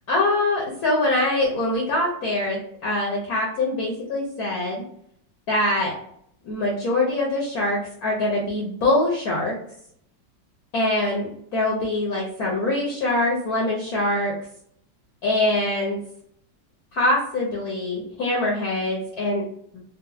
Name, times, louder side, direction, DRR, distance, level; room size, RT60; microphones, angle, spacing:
voice 1, 0.1-4.8 5.5-5.9 6.4-9.5 10.7-14.3 15.2-16.0 16.9-19.4, left 2 dB, 60° left, -3 dB, 1.0 m, -23 dB
3.8 x 2.1 x 2.6 m, 0.68 s
omnidirectional pair, 2.2 m